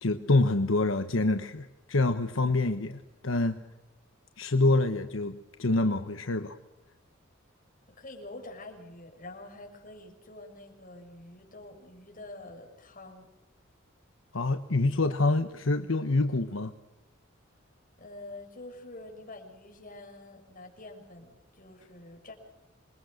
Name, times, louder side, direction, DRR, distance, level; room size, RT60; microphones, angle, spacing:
voice 1, 0.0-3.6 4.4-6.5 14.3-16.7, left 2 dB, 75° left, 8 dB, 1.1 m, -26 dB
voice 2, 7.9-13.3 18.0-22.3, left 2 dB, 45° left, 3 dB, 6.4 m, -46 dB
27.5 x 22.0 x 6.6 m, 1.0 s
head